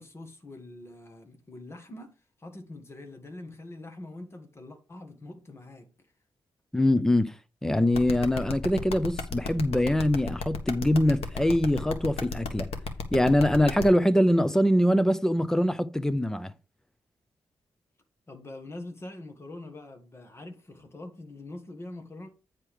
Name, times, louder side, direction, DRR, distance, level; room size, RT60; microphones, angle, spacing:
voice 1, 0.0-2.1 2.4-5.9 18.3-22.3, left 2 dB, 25° left, 1.7 m, -44 dB
voice 2, 6.7-7.3 7.6-12.7 13.1-16.5, left 1 dB, 5° left, 0.6 m, -23 dB
sound 1, 7.9-13.8, left 4 dB, 80° left, 1.5 m, -33 dB
9.6 x 4.4 x 5.0 m
wide cardioid pair, 125°, 10 cm